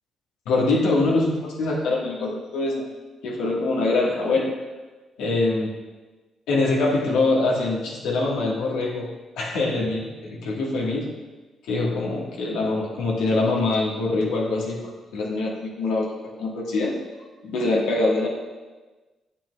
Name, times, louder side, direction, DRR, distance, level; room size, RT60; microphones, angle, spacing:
voice 1, 0.4-2.9 3.2-4.5 5.2-5.7 6.5-9.1 9.4-11.1 11.7-14.8 15.1-16.1 16.4-16.9 17.4-18.3, left 2 dB, 90° left, -3 dB, 1.4 m, -23 dB
9.0 x 7.4 x 2.3 m, 1.2 s
cardioid pair, 90°, 0 cm